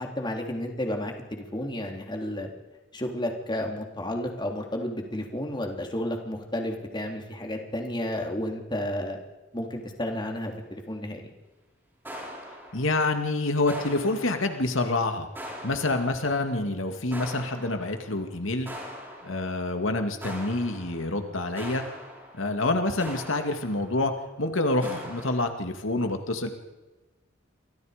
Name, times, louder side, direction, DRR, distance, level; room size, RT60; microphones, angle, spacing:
voice 1, 0.0-2.5 2.9-9.2 9.5-11.2, left 1 dB, 25° left, 2 dB, 3.4 m, -32 dB
sound 1, 12.0-13.3 13.7-14.9 15.3-16.5 17.1-18.3 18.6-19.8 20.2-24.2 24.8-25.4, equal, 10° right, 6.5 m, -42 dB
voice 2, 12.7-15.3 15.6-18.7 19.2-21.8 22.4-24.1 24.4-26.5, left 2 dB, 90° left, 6 dB, 2.3 m, -27 dB
29.0 x 25.0 x 5.2 m, 1.1 s
head